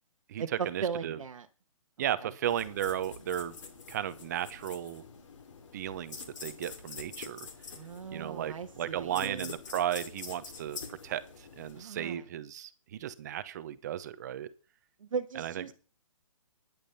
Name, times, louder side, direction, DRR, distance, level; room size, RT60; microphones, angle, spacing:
voice 1, 0.3-1.2 2.0-3.6 3.9-5.0 5.7-7.5 8.1-14.5 15.4-15.7, right 11 dB, 30° right, 15 dB, 0.9 m, -35 dB
voice 2, 0.8-1.5 2.2-2.3 7.8-9.5 11.7-12.2 15.1-15.7, right 6 dB, 70° right, 5 dB, 1.3 m, -37 dB
sound 1, 2.4-11.8, left 5 dB, 60° left, 3.0 m, -46 dB
10.5 x 10.5 x 5.6 m, 0.35 s
hypercardioid pair, 165°, 18 cm